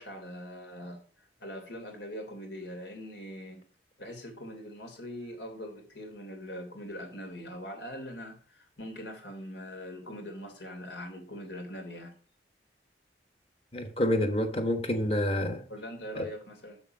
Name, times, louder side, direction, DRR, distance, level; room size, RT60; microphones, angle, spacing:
voice 1, 0.0-3.6 4.0-12.1 15.7-16.8, equal, 90° left, 3.2 m, -42 dB
voice 2, 13.7-15.7 16.2-16.3, left 1 dB, 35° left, 1.3 m, -28 dB
7.2 x 6.9 x 5.3 m
head